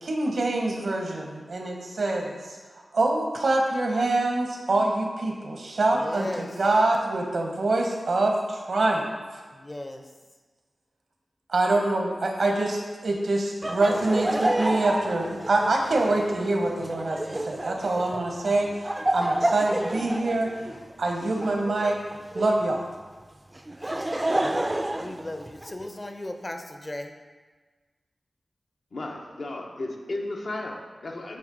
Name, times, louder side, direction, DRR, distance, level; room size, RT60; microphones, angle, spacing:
voice 1, 0.0-2.6 2.9-9.1 9.3-9.4 11.5-20.7 21.0-22.0 22.3-22.9, right 2 dB, 75° right, 2 dB, 0.9 m, -25 dB
voice 2, 6.0-6.5 9.5-10.0 23.8-23.9 24.4-27.1, left 1 dB, 30° left, 5 dB, 0.6 m, -37 dB
Laughter, 13.6-22.7 23.5-25.9, right 1 dB, 25° right, 0.4 m, -30 dB
voice 3, 28.9-31.4, left 2 dB, 75° left, 0 dB, 0.8 m, -34 dB
8.0 x 3.3 x 3.9 m, 1.4 s
cardioid pair, 45°, 0 cm